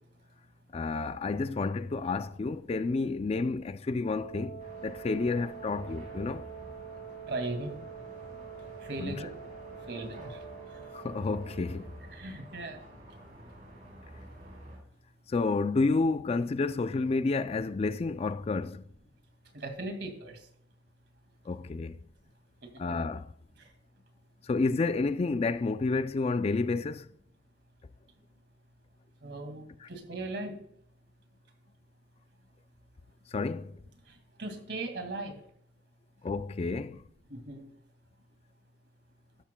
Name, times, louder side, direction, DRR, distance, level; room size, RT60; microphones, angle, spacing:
voice 1, 0.7-6.4 9.0-9.2 10.9-11.9 15.3-18.8 21.5-22.0 22.8-23.3 24.4-27.1 29.8-29.9 33.3-33.8 36.2-37.0, left 3 dB, 35° left, 0.4 m, -30 dB
Wind instrument woodwind instrument, 4.1-12.0, right 7 dB, 55° left, 2.7 m, -46 dB
sound 1, 4.6-14.8, right 1 dB, 50° right, 4.8 m, -49 dB
voice 2, 7.3-7.8 8.8-9.3 9.9-10.4 12.1-12.8 19.5-20.4 29.2-30.6 34.4-35.4 37.3-37.7, right 2 dB, 65° right, 2.2 m, -38 dB
12.5 x 12.0 x 2.2 m
head